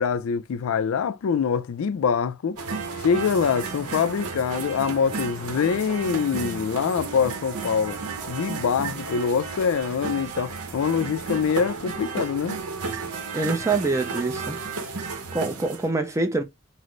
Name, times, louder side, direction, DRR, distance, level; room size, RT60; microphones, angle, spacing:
voice 1, 0.0-2.6 3.0-8.0 8.3-12.6, left 6 dB, 65° left, 0.3 m, -24 dB
sound 1, 2.6-15.9, right 4 dB, 85° right, 0.7 m, -33 dB
voice 2, 13.3-14.6 15.3-16.4, right 3 dB, 15° right, 0.4 m, -25 dB
4.0 x 2.0 x 3.1 m
head